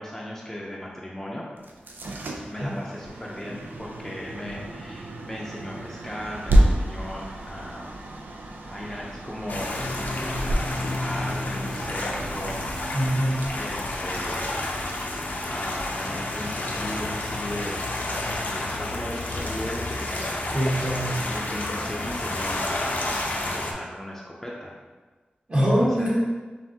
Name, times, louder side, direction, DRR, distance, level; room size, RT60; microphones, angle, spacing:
voice 1, 0.0-1.5 2.5-8.0 8.7-10.0 10.4-12.7 13.5-14.8 15.5-17.8 18.1-20.5 21.3-24.7 25.5-26.1, left 1 dB, 10° left, -4 dB, 0.6 m, -36 dB
sound 1, 1.6-14.5, right 1 dB, 90° right, 0.5 m, -29 dB
sound 2, 9.5-23.7, left 2 dB, 60° left, 0.6 m, -30 dB
voice 2, 12.9-13.4 20.5-21.1 25.5-26.3, equal, 40° right, -7 dB, 1.3 m, -23 dB
5.5 x 2.5 x 2.8 m, 1.3 s
wide cardioid pair, 85°, 3 cm